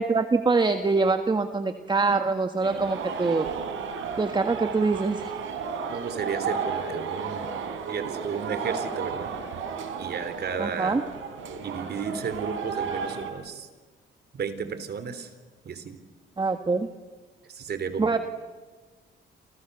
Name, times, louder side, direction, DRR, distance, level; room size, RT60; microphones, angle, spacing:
voice 1, 0.0-3.5 4.2-5.3 10.6-11.0 16.4-16.9 18.0-18.2, right 4 dB, 20° right, 7 dB, 1.6 m, -24 dB
sound 1, 2.6-13.3, right 5 dB, 85° right, 4.5 m, -33 dB
voice 2, 5.9-7.5 7.9-9.3 10.0-11.0 11.6-13.7 14.3-15.3 15.6-16.0 17.5-18.2, right 6 dB, 55° right, 11 dB, 3.6 m, -33 dB
28.5 x 28.0 x 6.9 m, 1.4 s
cardioid pair, 90°, 20 cm